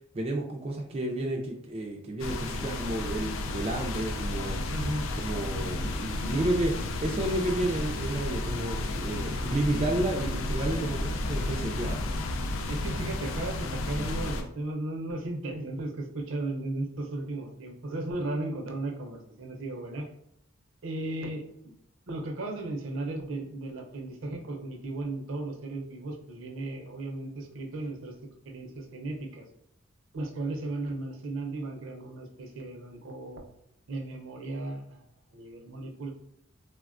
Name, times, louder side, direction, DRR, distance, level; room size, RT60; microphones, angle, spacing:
voice 1, 0.1-4.6 5.2-6.7 7.0-12.0, right 1 dB, 30° right, 0 dB, 0.3 m, -31 dB
sound 1, 2.2-14.4, left 2 dB, 80° left, 0.4 m, -32 dB
voice 2, 4.7-5.1 12.7-20.1 20.8-21.7 22.1-28.1 28.4-29.5 30.1-33.4 33.9-35.0 35.3-36.1, right 2 dB, 75° right, 3 dB, 0.5 m, -35 dB
3.2 x 2.1 x 2.4 m, 0.74 s
head